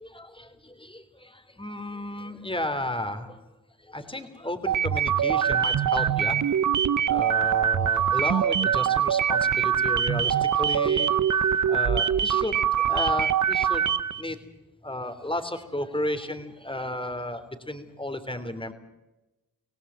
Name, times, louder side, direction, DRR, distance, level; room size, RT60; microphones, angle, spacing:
voice 1, 0.0-3.4 3.8-6.4 7.1-11.1 11.3-13.8 14.2-14.4 14.8-18.7, left 1 dB, 15° left, 8 dB, 3.4 m, -33 dB
sound 1, 4.7-14.2, right 9 dB, 50° right, 0.9 m, -23 dB
25.0 x 17.0 x 8.3 m, 1.0 s
supercardioid pair, 40°, 38 cm